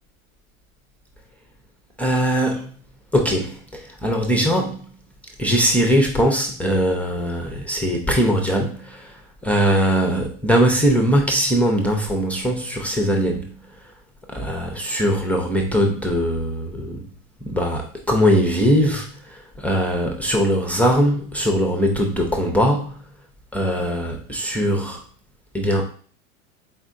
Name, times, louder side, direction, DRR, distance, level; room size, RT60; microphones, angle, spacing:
voice 1, 2.0-2.7 3.1-4.8 5.4-9.1 9.4-13.5 14.3-17.1 17.5-23.0 23.5-25.0 25.5-25.8, equal, 5° left, 1 dB, 0.6 m, -21 dB
4.3 x 3.5 x 2.6 m, 0.43 s
hypercardioid pair, 105°, 42 cm